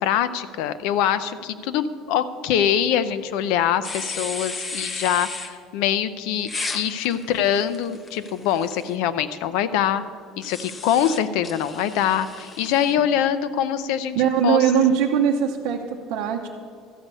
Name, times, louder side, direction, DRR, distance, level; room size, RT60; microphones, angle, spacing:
voice 1, 0.0-10.0 10.4-14.2 14.4-14.6, left 9 dB, 75° left, 13 dB, 0.5 m, -24 dB
sound 1, 3.8-5.5 6.4-8.9 10.4-12.9, left 3 dB, 20° left, 0.6 m, -34 dB
voice 2, 14.2-16.5, right 7 dB, 75° right, 0 dB, 0.7 m, -21 dB
13.0 x 8.2 x 5.4 m, 2.1 s
cardioid pair, 170°, 0 cm